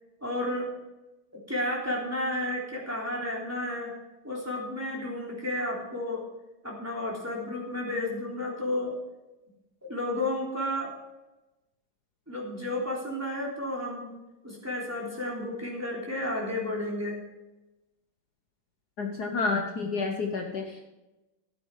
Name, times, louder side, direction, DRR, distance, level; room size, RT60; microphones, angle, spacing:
voice 1, 0.2-0.7 1.5-3.9 4.2-6.2 6.6-8.9 9.8-10.9 12.3-14.1 14.4-17.2, left 1 dB, 5° right, -4 dB, 3.3 m, -32 dB
voice 2, 19.0-20.8, left 4 dB, 60° left, 2 dB, 1.6 m, -30 dB
14.5 x 8.8 x 4.8 m, 1.0 s
omnidirectional pair, 2.1 m